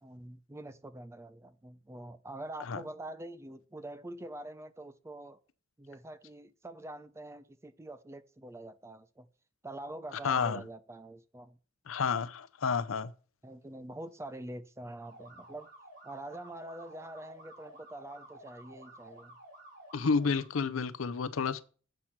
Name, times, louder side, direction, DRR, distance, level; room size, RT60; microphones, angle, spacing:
voice 1, 0.0-5.4 5.8-9.3 9.6-11.6 13.4-15.7 16.0-19.4, right 1 dB, 15° right, 0.5 m, -45 dB
voice 2, 10.2-10.6 11.9-13.1 19.9-21.6, left 5 dB, 80° left, 0.6 m, -30 dB
sound 1, 15.0-20.4, right 1 dB, 55° right, 4.8 m, -53 dB
8.1 x 5.9 x 5.8 m
head